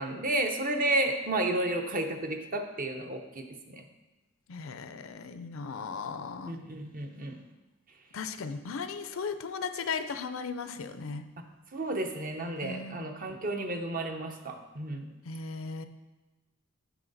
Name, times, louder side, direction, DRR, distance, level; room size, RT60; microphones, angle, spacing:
voice 1, 0.0-3.9 6.5-7.4 11.7-15.1, right 1 dB, 40° right, 5 dB, 0.8 m, -32 dB
voice 2, 4.5-6.6 8.1-11.3 12.6-13.1 15.2-15.9, left 5 dB, 70° left, 10 dB, 0.5 m, -37 dB
9.0 x 6.3 x 4.0 m, 1.1 s
head